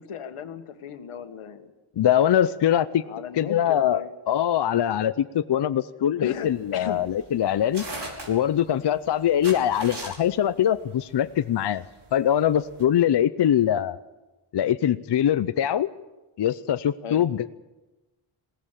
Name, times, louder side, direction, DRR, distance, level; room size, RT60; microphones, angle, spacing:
voice 1, 0.0-1.7 3.1-4.1 6.2-7.0 17.0-17.3, left 7 dB, 85° left, 8 dB, 1.7 m, -36 dB
voice 2, 2.0-3.0 3.4-7.8 8.3-11.8 12.1-14.0 14.5-15.9 16.4-17.5, left 10 dB, 55° left, 12 dB, 0.7 m, -23 dB
sound 1, 6.3-12.8, right 2 dB, 55° right, 5.5 m, -39 dB
21.0 x 17.5 x 7.4 m, 1.1 s
wide cardioid pair, 110°, 50 cm